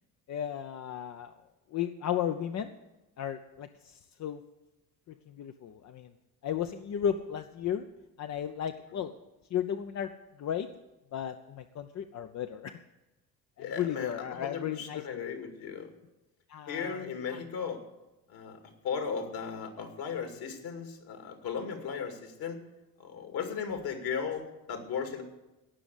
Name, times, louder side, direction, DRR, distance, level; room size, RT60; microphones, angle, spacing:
voice 1, 0.3-1.4 1.7-2.7 3.2-4.4 5.1-6.1 6.4-7.9 8.2-9.1 9.5-10.1 10.4-10.7 11.1-12.8 13.6-15.2 16.5-17.4, left 9 dB, 40° left, 8 dB, 0.7 m, -34 dB
voice 2, 13.6-15.9 16.7-17.8 18.3-18.6 18.8-22.6 23.0-25.2, left 6 dB, 55° left, 5 dB, 2.4 m, -36 dB
17.5 x 6.1 x 8.2 m, 1.0 s
hypercardioid pair, 60°, 43 cm